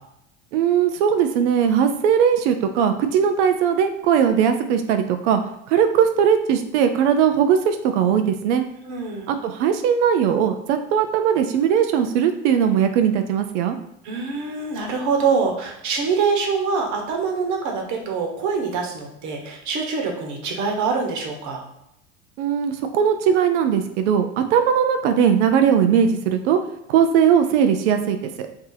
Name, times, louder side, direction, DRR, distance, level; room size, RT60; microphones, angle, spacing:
voice 1, 0.5-5.4 5.7-8.6 9.3-13.8 22.4-26.6 26.9-28.5, right 8 dB, 75° right, 7 dB, 0.5 m, -19 dB
voice 2, 8.9-9.3 14.0-21.6, right 5 dB, 55° right, 2 dB, 1.1 m, -24 dB
2.7 x 2.7 x 3.9 m, 0.80 s
supercardioid pair, 100°, 36 cm